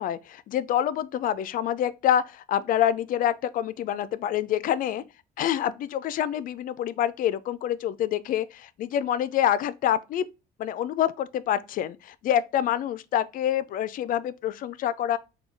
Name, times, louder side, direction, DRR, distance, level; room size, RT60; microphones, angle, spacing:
voice 1, 0.0-5.0 5.4-10.3 10.6-15.2, left 10 dB, 55° left, 0.4 m, -26 dB
3.7 x 2.2 x 3.1 m
cardioid pair, 110°, 17 cm